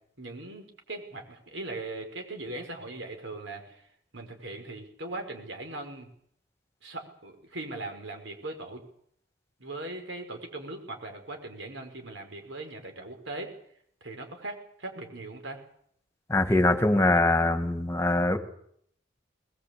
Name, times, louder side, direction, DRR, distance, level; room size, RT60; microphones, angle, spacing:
voice 1, 0.2-3.9 4.1-6.1 6.8-8.8 9.6-13.5 14.0-15.6, right 2 dB, 65° right, 4 dB, 5.4 m, -39 dB
voice 2, 16.3-18.4, left 2 dB, 15° left, 6 dB, 2.1 m, -23 dB
21.5 x 21.0 x 8.5 m, 0.68 s
head